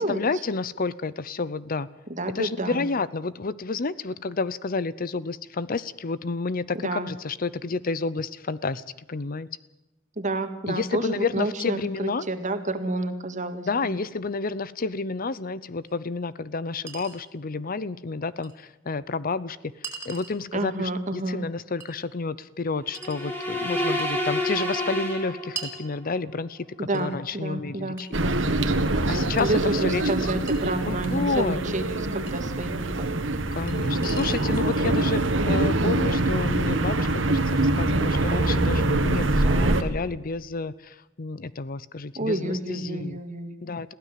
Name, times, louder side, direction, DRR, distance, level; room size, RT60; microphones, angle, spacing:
voice 1, 0.0-1.9 2.3-9.5 10.7-12.2 13.7-26.7 26.9-28.1 29.1-30.6 30.9-31.6 33.5-43.2 43.6-43.9, left 4 dB, 50° left, 17 dB, 0.7 m, -30 dB
voice 2, 2.1-2.9 6.8-7.1 10.2-13.7 20.5-21.4 26.8-28.7 29.4-33.2 39.4-39.8 42.2-43.7, right 2 dB, 40° right, 8 dB, 2.0 m, -30 dB
Chink clink, 15.9-16.0 16.9-17.2 18.4-18.5 19.8-20.4 21.8-21.9 22.9-23.2 24.0-24.2 25.6-25.8 26.9-27.1 28.0-28.7 29.4-29.5 30.5-30.6 32.3-32.4 33.7-33.8 34.0-34.5, right 5 dB, 15° right, 5.0 m, -39 dB
sound 1, 22.9-26.0, left 1 dB, 10° left, 4.2 m, -29 dB
sound 2, 28.1-39.8, right 2 dB, 85° right, 1.8 m, -24 dB
22.0 x 16.0 x 7.6 m, 0.99 s
head